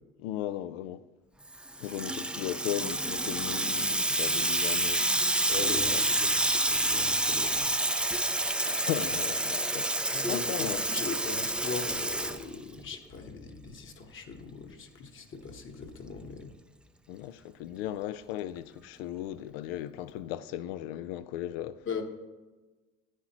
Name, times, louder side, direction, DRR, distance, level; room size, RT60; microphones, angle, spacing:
voice 1, 0.2-1.0 1.8-5.1 5.9-6.0 8.6-10.9 17.1-21.9, left 12 dB, 85° left, 0.5 m, -36 dB
Water tap faucet / Sink (filling or washing), 1.5-12.9, right 1 dB, 5° right, 0.4 m, -28 dB
voice 2, 5.5-7.7 10.1-16.5 21.9-22.0, left 5 dB, 45° left, 1.2 m, -39 dB
10.0 x 9.8 x 3.0 m
supercardioid pair, 90°, 29 cm